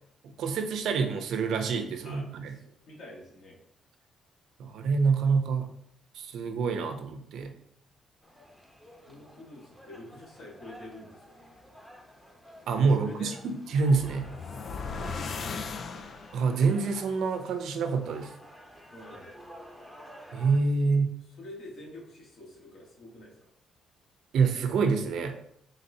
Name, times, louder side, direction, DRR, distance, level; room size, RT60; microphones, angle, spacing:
voice 1, 0.2-2.5 4.6-5.7 6.1-7.6 12.7-14.3 16.3-18.3 20.3-21.2 24.3-25.4, right 4 dB, 70° right, 7 dB, 0.5 m, -27 dB
voice 2, 2.0-3.6 8.8-11.6 13.0-13.3 14.9-16.0 18.9-19.4 21.4-23.4, left 1 dB, 65° left, -2 dB, 1.4 m, -47 dB
sound 1, 8.2-20.6, equal, 5° left, 0.7 m, -51 dB
sound 2, 13.7-16.6, left 5 dB, 45° left, 0.3 m, -37 dB
4.0 x 3.8 x 2.7 m, 0.71 s
cardioid pair, 140°, 0 cm